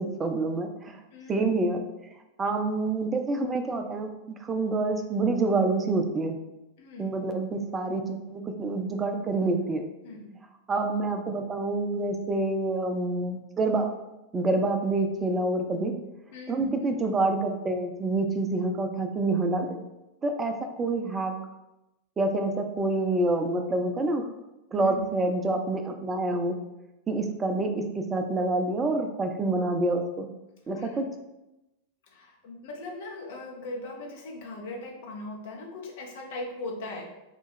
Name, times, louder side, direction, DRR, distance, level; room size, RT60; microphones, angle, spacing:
voice 1, 0.0-1.0 1.3-1.8 2.4-4.1 4.4-6.4 7.0-9.8 10.7-13.9 14.3-16.0 16.5-19.8 20.2-21.3 22.2-24.3 24.7-26.6 27.1-30.3 30.7-31.0, right 2 dB, 20° right, 5 dB, 0.5 m, -27 dB
voice 2, 1.1-1.5 6.8-7.1 10.0-10.3 16.3-16.7 24.8-25.1 30.7-31.0 32.1-37.0, left 2 dB, 55° left, 0 dB, 0.8 m, -39 dB
3.7 x 2.4 x 4.2 m, 0.96 s
figure-of-eight pair, 90°, 0 cm